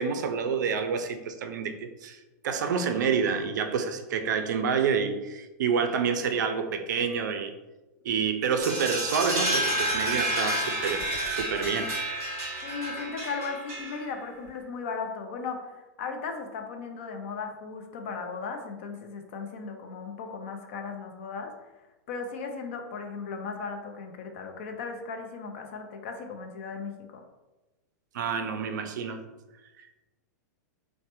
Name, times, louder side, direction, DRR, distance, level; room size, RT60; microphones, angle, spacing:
voice 1, 0.0-1.7 2.0-7.5 8.0-11.0 11.3-11.9 28.1-29.2 29.8-29.9, right 6 dB, 80° right, 7 dB, 0.4 m, -28 dB
sound 1, 8.6-14.2, right 1 dB, 25° right, 1.4 m, -30 dB
voice 2, 12.6-21.5 22.1-27.2, left 5 dB, 40° left, 4 dB, 0.4 m, -37 dB
3.1 x 2.1 x 2.9 m, 1.1 s
supercardioid pair, 175°, 10 cm